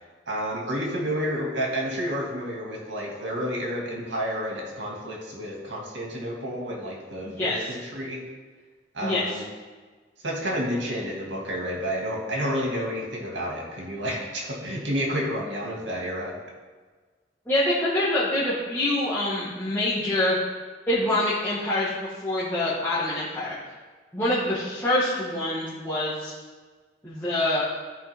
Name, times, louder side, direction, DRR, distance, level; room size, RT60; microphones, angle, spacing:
voice 1, 0.3-8.2 8.9-9.5 10.2-16.3, equal, 90° right, -2 dB, 2.2 m, -30 dB
voice 2, 17.5-20.4 20.9-21.9 22.2-23.5 24.1-26.3 27.0-27.6, left 1 dB, 10° left, -11 dB, 1.6 m, -25 dB
14.5 x 5.0 x 3.5 m, 1.4 s
head